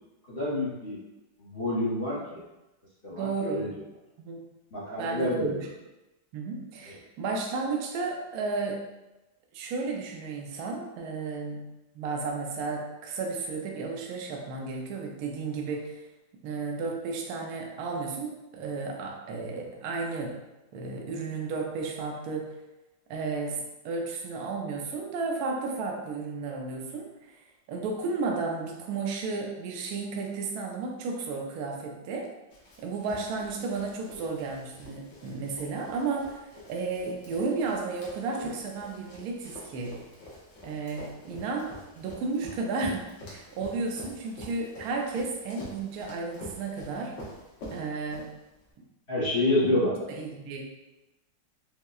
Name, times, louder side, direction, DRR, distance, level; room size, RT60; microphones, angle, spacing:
voice 1, 0.3-1.0 1.4-2.4 3.0-3.7 4.7-5.7 6.9-7.0 49.1-50.0, left 1 dB, 40° left, -9 dB, 0.9 m, -28 dB
voice 2, 3.1-3.6 4.2-4.4 5.0-5.7 6.3-8.8 9.5-11.7 11.9-16.0 16.4-20.4 20.7-22.5 23.1-32.3 32.8-40.0 40.6-47.1 47.7-48.3 49.6-50.6, right 4 dB, 70° right, 1 dB, 0.9 m, -33 dB
Run, 32.5-48.7, left 1 dB, 75° left, 1.6 m, -47 dB
5.4 x 2.1 x 2.3 m, 1.0 s
omnidirectional pair, 2.1 m